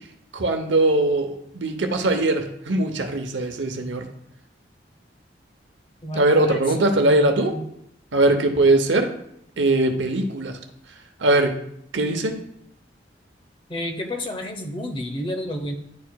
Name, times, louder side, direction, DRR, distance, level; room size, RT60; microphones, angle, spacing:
voice 1, 0.3-4.1 6.1-7.5 8.1-9.1 9.6-10.6 11.2-11.5 11.9-12.4, right 2 dB, 85° right, 5 dB, 0.8 m, -21 dB
voice 2, 6.0-7.7 13.7-15.7, left 1 dB, 30° left, 4 dB, 0.7 m, -31 dB
10.5 x 4.7 x 2.3 m, 0.73 s
head